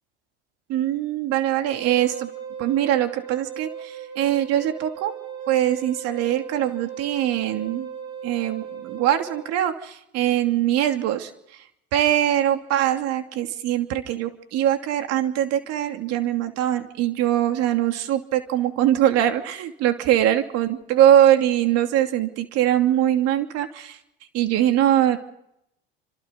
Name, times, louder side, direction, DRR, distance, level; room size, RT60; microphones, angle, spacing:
voice 1, 0.7-2.3 2.6-5.1 5.5-7.9 8.2-11.3 11.9-24.0 24.3-25.2, right 11 dB, 55° right, 6 dB, 2.8 m, -22 dB
Wind instrument woodwind instrument, 1.6-9.5, right 7 dB, 75° right, 6.9 m, -37 dB
28.5 x 26.5 x 4.1 m, 0.79 s
hypercardioid pair, 85°, 29 cm